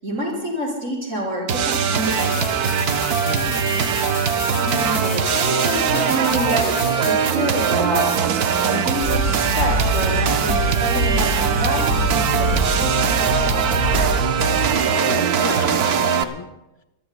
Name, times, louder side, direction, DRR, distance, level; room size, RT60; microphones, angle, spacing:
voice 1, 0.0-2.6 4.5-6.7 6.9-8.4 8.7-13.9, right 1 dB, 55° right, -4 dB, 5.7 m, -27 dB
sound 1, 1.5-16.2, right 7 dB, 85° right, 1.4 m, -21 dB
sound 2, 2.0-7.1, left 10 dB, 70° left, 1.1 m, -34 dB
voice 2, 3.3-3.7 14.7-16.5, left 3 dB, 25° left, 6 dB, 0.7 m, -31 dB
sound 3, 9.0-14.7, equal, 85° left, 5.2 m, -24 dB
27.0 x 21.0 x 2.2 m, 0.96 s
omnidirectional pair, 1.6 m